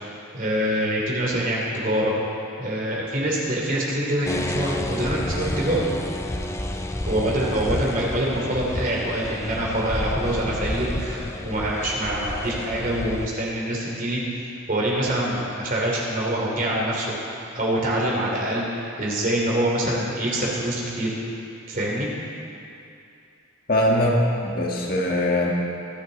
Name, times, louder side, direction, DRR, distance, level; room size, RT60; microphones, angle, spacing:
voice 1, 0.3-2.1 2.6-5.8 7.0-14.2 14.7-21.1 21.7-22.1, right 1 dB, 40° right, -3 dB, 3.1 m, -25 dB
sound 1, 4.2-13.3, left 1 dB, 15° left, 0.5 m, -30 dB
voice 2, 23.7-25.5, left 1 dB, 45° left, -2 dB, 1.6 m, -21 dB
25.0 x 9.2 x 4.1 m, 2.6 s
head